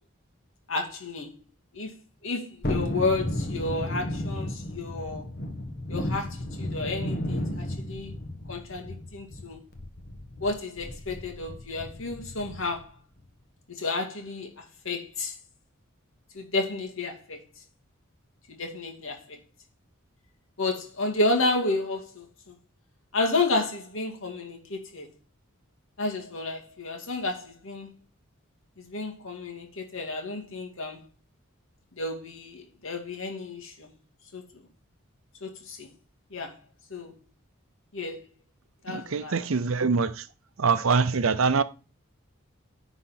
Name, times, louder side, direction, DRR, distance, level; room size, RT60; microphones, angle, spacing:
voice 1, 0.7-1.3 1.7-1.9 2.2-5.3 5.9-8.1 8.5-9.6 10.4-12.9 13.7-15.3 16.3-17.4 18.5-19.4 20.6-22.5 23.1-25.1 26.0-27.9 28.8-31.0 32.0-33.9 34.3-34.4 35.4-35.9 36.3-36.5 36.9-37.1 37.9-38.2 38.8-39.4, left 2 dB, 70° left, 2.1 m, -31 dB
Thunderstorm, 2.6-12.9 13.2-13.3, left 1 dB, 45° left, 1.2 m, -34 dB
voice 2, 38.9-40.3 40.6-41.6, right 5 dB, 75° right, 0.7 m, -24 dB
10.0 x 4.0 x 5.8 m
head